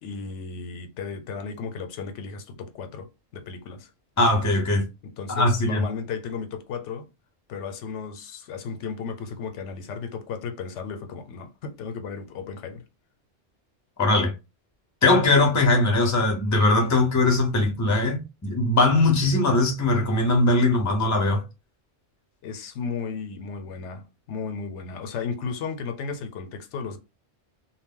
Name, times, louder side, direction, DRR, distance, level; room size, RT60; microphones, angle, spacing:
voice 1, 0.0-3.9 5.0-7.1 7.5-12.8 22.4-27.0, left 5 dB, 85° left, 0.9 m, -34 dB
voice 2, 4.2-4.8 5.3-5.8 14.0-14.3 15.0-21.4, left 2 dB, 20° left, 0.5 m, -20 dB
2.2 x 2.0 x 3.5 m
omnidirectional pair, 1.2 m